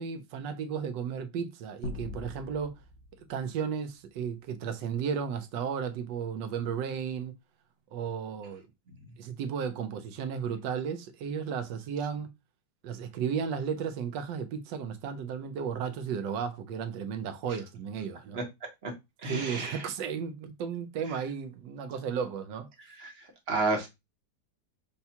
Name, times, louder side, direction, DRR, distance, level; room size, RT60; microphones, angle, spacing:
voice 1, 0.0-2.7 3.2-7.4 7.9-8.6 9.2-12.3 12.8-18.4 19.3-22.7, right 7 dB, 70° right, 1.2 m, -34 dB
sound 1, 1.8-4.4, left 5 dB, 80° left, 0.6 m, -43 dB
voice 2, 19.2-19.9 21.1-21.2 22.8-23.9, right 3 dB, 40° right, 0.9 m, -32 dB
6.8 x 2.3 x 2.8 m
omnidirectional pair, 2.2 m